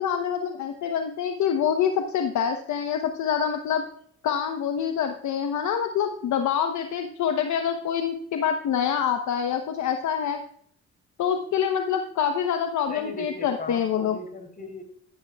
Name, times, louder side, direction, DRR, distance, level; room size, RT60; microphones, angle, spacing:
voice 1, 0.0-3.8 4.2-10.4 11.2-14.2, left 8 dB, 70° left, 5 dB, 1.0 m, -26 dB
voice 2, 12.9-14.8, left 2 dB, 30° left, 4 dB, 3.4 m, -38 dB
13.0 x 12.0 x 2.3 m, 0.63 s
cardioid pair, 90°, 30 cm